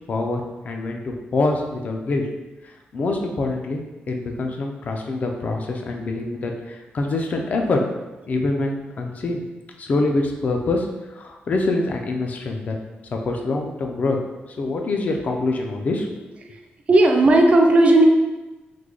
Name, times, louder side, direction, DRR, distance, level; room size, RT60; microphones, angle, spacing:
voice 1, 0.1-2.3 2.6-3.8 4.1-7.8 8.3-9.4 9.8-12.8 13.1-14.2 14.5-16.3, left 2 dB, 40° left, 2 dB, 0.4 m, -25 dB
voice 2, 16.9-18.0, right 2 dB, 35° right, 2 dB, 0.3 m, -14 dB
3.2 x 2.2 x 3.6 m, 1.1 s
wide cardioid pair, 170°, 4 cm